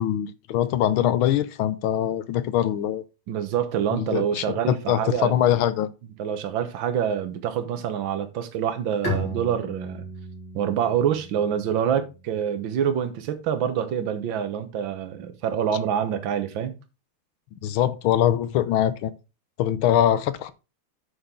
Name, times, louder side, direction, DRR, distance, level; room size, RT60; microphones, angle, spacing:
voice 1, 0.0-3.0 3.9-5.9 17.5-19.1 19.6-20.5, left 11 dB, 75° left, 1.5 m, -23 dB
voice 2, 3.3-5.3 6.2-10.1 10.5-16.8, right 8 dB, 65° right, 1.7 m, -26 dB
Bowed string instrument, 9.0-12.6, left 1 dB, 55° left, 3.2 m, -35 dB
8.1 x 6.5 x 3.8 m
omnidirectional pair, 2.4 m